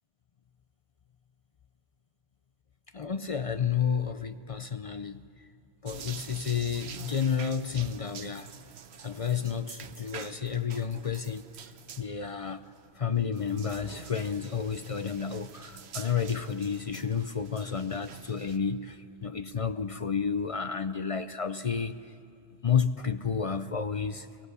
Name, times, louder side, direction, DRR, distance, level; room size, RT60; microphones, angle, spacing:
voice 1, 2.9-5.2 5.8-8.5 9.0-11.5 12.0-12.6 13.0-22.0 22.6-24.5, left 7 dB, 45° left, 0.5 m, -31 dB
sound 1, 5.9-18.6, right 7 dB, 75° right, 1.1 m, -47 dB
23.5 x 17.5 x 8.1 m
omnidirectional pair, 1.1 m